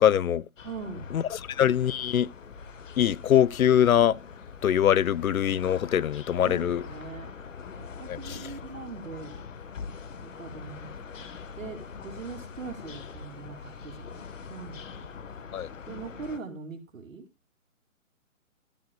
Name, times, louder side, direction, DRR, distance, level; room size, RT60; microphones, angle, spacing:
voice 1, 0.0-0.4 1.1-2.3 3.0-4.2 4.6-6.8 8.1-8.4 15.5-15.7, left 10 dB, 80° left, 0.6 m, -23 dB
sound 1, 0.6-16.4, left 6 dB, 65° left, 1.4 m, -43 dB
voice 2, 0.6-1.1 6.4-7.3 7.8-9.3 10.2-10.9 11.1-11.3 11.6-15.1 15.9-17.2, right 5 dB, 65° right, 2.8 m, -41 dB
13.0 x 7.6 x 2.3 m
hypercardioid pair, 155°, 42 cm